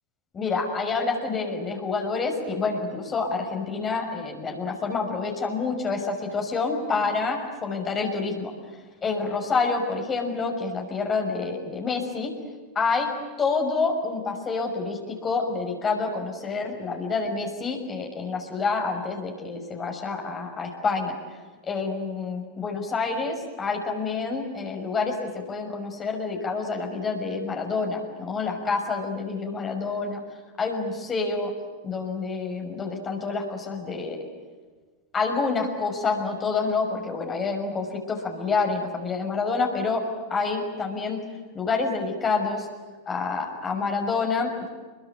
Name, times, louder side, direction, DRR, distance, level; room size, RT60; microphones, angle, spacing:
voice 1, 0.3-8.5 9.0-12.3 12.7-13.1 13.4-21.2 21.6-30.2 30.6-31.5 31.8-34.2 35.1-40.0 40.3-41.2 41.5-42.7 43.1-44.7, left 4 dB, 25° left, 2 dB, 6.2 m, -28 dB
29.0 x 22.5 x 9.2 m, 1.4 s
figure-of-eight pair, 90°, 0 cm